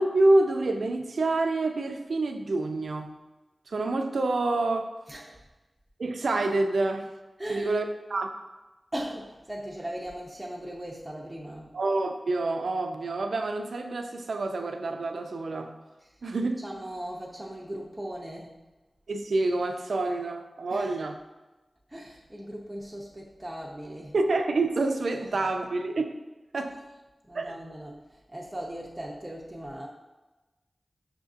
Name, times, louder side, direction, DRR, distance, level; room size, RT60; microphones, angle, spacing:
voice 1, 0.0-3.1 3.7-4.9 6.0-7.1 7.5-7.8 8.1-8.3 11.7-15.7 16.2-16.6 19.1-21.1 24.1-26.2 26.5-26.8 27.3-27.5, right 2 dB, 85° right, 5 dB, 0.3 m, -27 dB
voice 2, 5.1-5.4 7.4-7.7 8.9-11.8 16.0-16.2 16.6-18.6 20.7-20.9 21.9-24.2 25.2-25.5 27.2-29.9, right 1 dB, 10° right, -4 dB, 0.5 m, -38 dB
5.9 x 2.5 x 2.4 m, 1.1 s
wide cardioid pair, 85°, 0 cm